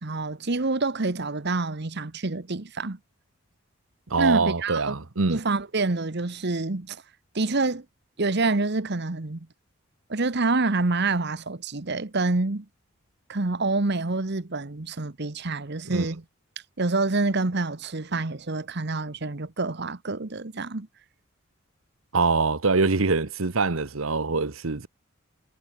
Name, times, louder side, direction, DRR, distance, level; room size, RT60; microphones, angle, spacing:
voice 1, 0.0-3.0 4.2-5.0 5.3-7.0 7.3-7.8 8.2-9.5 10.1-12.7 13.3-16.2 16.8-20.9, right 3 dB, 55° right, 1.2 m, -27 dB
voice 2, 4.1-5.4 15.9-16.1 22.1-24.9, right 4 dB, 85° right, 1.2 m, -24 dB
head